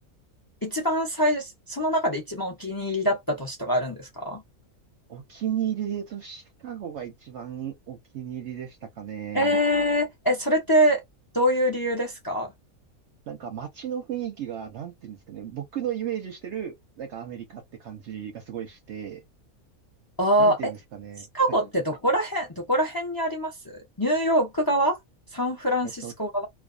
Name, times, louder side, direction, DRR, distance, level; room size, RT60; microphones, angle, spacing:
voice 1, 0.6-4.4 9.3-11.0 11.3-12.5 20.2-20.7 21.3-25.0 25.3-26.5, equal, 30° left, 0.4 m, -24 dB
voice 2, 5.1-9.5 13.3-19.2 20.4-21.6 25.8-26.1, right 10 dB, 65° right, 0.8 m, -34 dB
2.5 x 2.3 x 2.2 m
omnidirectional pair, 1.5 m